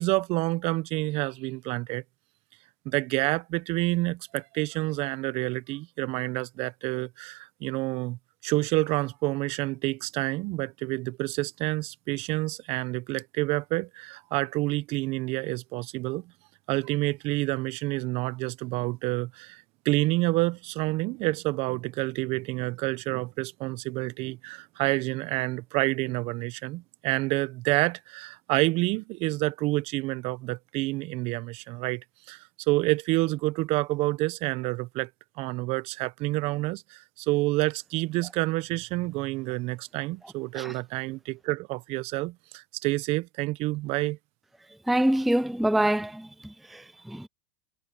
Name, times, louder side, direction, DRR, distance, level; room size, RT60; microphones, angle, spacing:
voice 1, 0.0-2.0 2.8-16.3 16.7-35.1 35.4-44.2, right 21 dB, 50° right, 1.1 m, -28 dB
voice 2, 44.9-47.3, right 1 dB, ahead, 0.4 m, -26 dB
hypercardioid pair, 105°, 13 cm